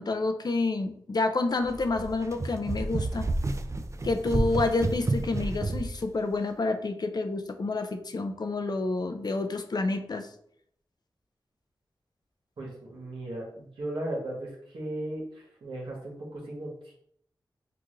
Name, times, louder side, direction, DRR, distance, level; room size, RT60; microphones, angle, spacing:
voice 1, 0.0-3.6 4.0-10.3, left 3 dB, 55° left, 7 dB, 0.6 m, -29 dB
sound 1, 1.6-6.0, right 2 dB, 35° right, 0.4 m, -30 dB
voice 2, 12.6-14.5 14.7-15.2 15.6-16.7, right 1 dB, 85° right, -3 dB, 1.5 m, -36 dB
5.8 x 2.5 x 3.2 m, 0.67 s
cardioid pair, 50°, 8 cm